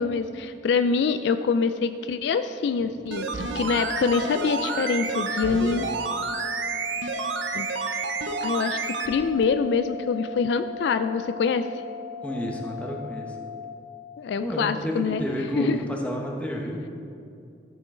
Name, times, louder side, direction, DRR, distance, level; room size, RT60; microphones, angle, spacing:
voice 1, 0.0-5.9 7.5-7.7 8.4-11.7 14.2-15.2 15.6-15.8, left 5 dB, 65° left, 10 dB, 0.3 m, -25 dB
sound 1, 3.1-9.1 9.4-9.5, right 4 dB, 80° right, 0.7 m, -30 dB
sound 2, 3.7-13.7, left 8 dB, 30° right, 0.7 m, -38 dB
voice 2, 12.2-13.4 14.4-16.9, equal, 10° left, 0 dB, 1.0 m, -30 dB
13.0 x 6.1 x 3.7 m, 2.5 s
head